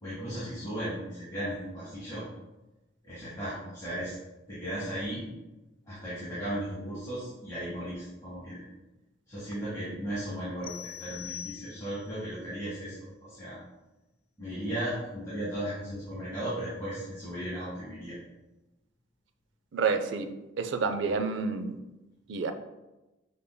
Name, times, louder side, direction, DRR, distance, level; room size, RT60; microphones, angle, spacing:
voice 1, 0.0-2.2 3.0-4.1 4.5-5.2 5.9-8.6 9.3-13.6 14.4-18.2, right 1 dB, 15° left, -11 dB, 1.6 m, -36 dB
sound 1, 10.6-12.2, left 10 dB, 85° left, 0.6 m, -43 dB
voice 2, 19.7-20.3 20.6-21.8 22.3-22.5, right 4 dB, 70° right, 8 dB, 0.4 m, -29 dB
6.7 x 3.5 x 2.2 m, 1.0 s
head